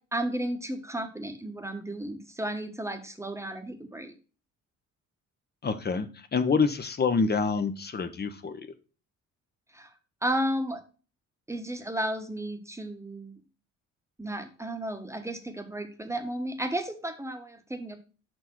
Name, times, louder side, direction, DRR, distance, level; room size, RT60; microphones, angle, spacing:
voice 1, 0.1-4.1 9.7-9.9 10.2-10.8 11.5-13.4 14.2-18.0, right 1 dB, 10° right, 6 dB, 1.1 m, -33 dB
voice 2, 5.6-8.6, left 5 dB, 35° left, 10 dB, 0.8 m, -27 dB
5.5 x 4.5 x 4.4 m, 0.36 s
cardioid pair, 90°, 30 cm